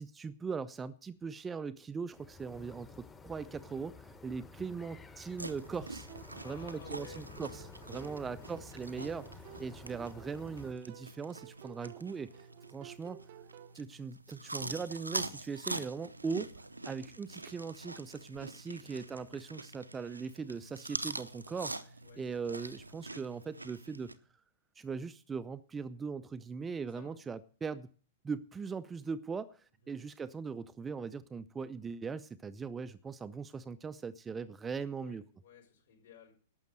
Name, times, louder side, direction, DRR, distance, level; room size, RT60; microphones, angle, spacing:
voice 1, 0.0-6.1 6.4-7.6 7.9-13.2 13.7-16.5 16.8-21.9 22.2-24.1 24.8-27.9 28.2-35.2, right 5 dB, 15° right, 0.5 m, -40 dB
sound 1, 2.1-10.7, left 4 dB, 15° left, 1.1 m, -52 dB
voice 2, 4.6-4.9 6.3-7.6 7.9-8.5 18.6-19.0 22.0-22.2 26.8-27.2 29.8-30.0 34.9-36.3, left 7 dB, 60° left, 4.9 m, -56 dB
sound 2, 5.4-24.2, right 2 dB, 85° right, 0.8 m, -45 dB
sound 3, 6.1-13.8, right 15 dB, 50° right, 0.7 m, -55 dB
12.0 x 7.2 x 7.7 m
figure-of-eight pair, 100°, 0 cm